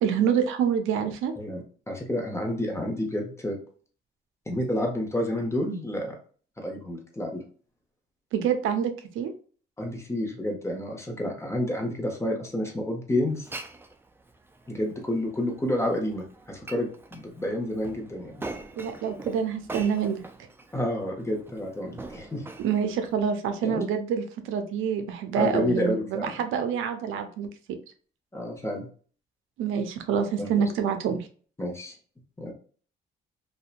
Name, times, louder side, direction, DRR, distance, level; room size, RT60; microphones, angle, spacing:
voice 1, 0.0-1.3 8.3-9.3 18.7-20.2 22.6-27.5 29.6-31.2, right 7 dB, 85° right, 7 dB, 0.5 m, -26 dB
voice 2, 1.4-3.6 4.5-6.1 6.6-7.4 9.8-13.5 14.7-18.3 20.7-22.4 23.6-23.9 25.4-26.3 28.3-28.9 30.4-30.5 31.6-31.9 32.4-32.5, left 1 dB, 15° left, 2 dB, 0.8 m, -29 dB
Glass, 13.3-23.2, right 2 dB, 10° right, 0.3 m, -44 dB
2.7 x 2.2 x 2.4 m, 0.43 s
cardioid pair, 90°, 20 cm